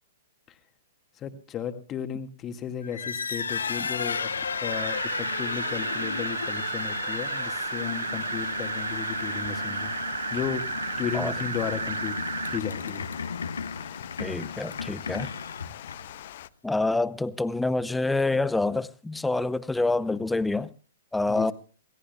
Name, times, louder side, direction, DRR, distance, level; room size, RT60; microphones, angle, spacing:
voice 1, 1.2-4.3 4.6-9.9 10.3-10.6 11.0-12.2 12.5-13.1 13.8-14.0 21.3-21.5, left 8 dB, 25° left, 1.9 m, -34 dB
squeaking-door, 2.8-16.3, left 5 dB, 75° left, 1.1 m, -34 dB
Water, 3.5-16.5, left 13 dB, 55° left, 0.7 m, -43 dB
sound 1, 4.7-12.6, right 6 dB, 70° right, 0.7 m, -33 dB
voice 2, 14.2-15.3 16.6-20.7 21.1-21.5, left 2 dB, 5° left, 0.7 m, -27 dB
27.5 x 17.5 x 2.3 m
figure-of-eight pair, 110°, 0 cm